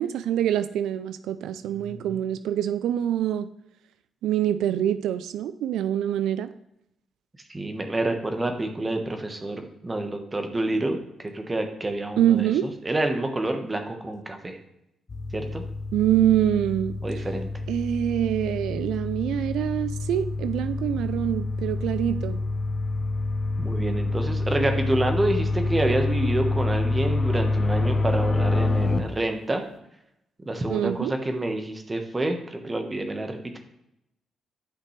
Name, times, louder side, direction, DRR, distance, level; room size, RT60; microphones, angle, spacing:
voice 1, 0.0-3.5 4.2-6.5 12.2-12.7 15.9-17.0 17.7-22.4 30.7-31.1, right 11 dB, 80° right, 12 dB, 0.3 m, -25 dB
voice 2, 1.8-2.1 7.5-14.6 15.3-15.6 17.0-17.5 23.6-29.6 30.4-33.6, right 2 dB, 25° right, 5 dB, 1.2 m, -28 dB
sound 1, 15.1-29.0, left 3 dB, 45° left, 0.8 m, -27 dB
10.0 x 5.8 x 3.2 m, 0.81 s
supercardioid pair, 50°, 0 cm